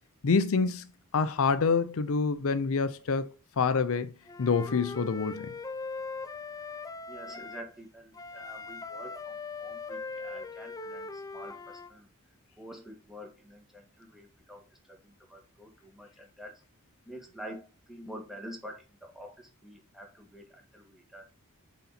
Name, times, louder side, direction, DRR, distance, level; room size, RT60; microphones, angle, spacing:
voice 1, 0.2-0.8 1.1-3.3 3.6-4.1 4.4-5.6, left 5 dB, 70° left, 0.5 m, -26 dB
Wind instrument woodwind instrument, 4.3-7.6 8.1-11.9, left 3 dB, 15° left, 0.5 m, -40 dB
voice 2, 7.1-12.1 12.6-16.6 17.1-21.3, equal, ahead, 1.8 m, -47 dB
7.9 x 4.1 x 4.2 m
head